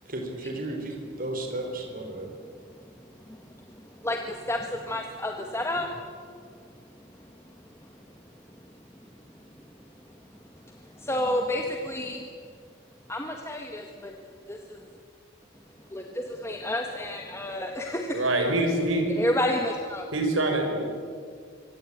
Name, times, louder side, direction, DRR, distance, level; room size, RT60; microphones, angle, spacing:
voice 1, 0.1-2.3, right 2 dB, 40° right, 3 dB, 4.1 m, -34 dB
voice 2, 4.0-5.9 11.0-12.2 13.1-14.1 14.5-14.6 15.9-18.2 19.2-20.1, left 1 dB, 15° left, 2 dB, 1.7 m, -30 dB
voice 3, 18.1-19.0 20.1-20.8, right 2 dB, 70° right, 3 dB, 6.4 m, -24 dB
25.5 x 24.5 x 8.8 m, 2.1 s
head